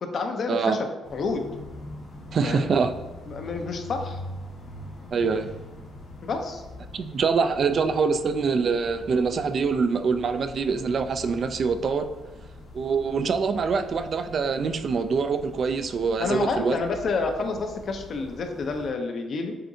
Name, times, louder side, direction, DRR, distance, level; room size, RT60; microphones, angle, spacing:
voice 1, 0.0-0.8 1.1-1.4 2.4-2.7 3.3-4.2 6.2-6.6 16.2-19.6, left 4 dB, 55° left, 4 dB, 0.7 m, -29 dB
sound 1, 1.0-18.9, left 1 dB, 75° left, 1.5 m, -43 dB
voice 2, 2.3-2.9 5.1-5.5 6.9-12.1 12.7-16.8, right 5 dB, 50° right, 8 dB, 0.4 m, -24 dB
7.6 x 2.6 x 2.7 m, 1.2 s
cardioid pair, 90°, 0 cm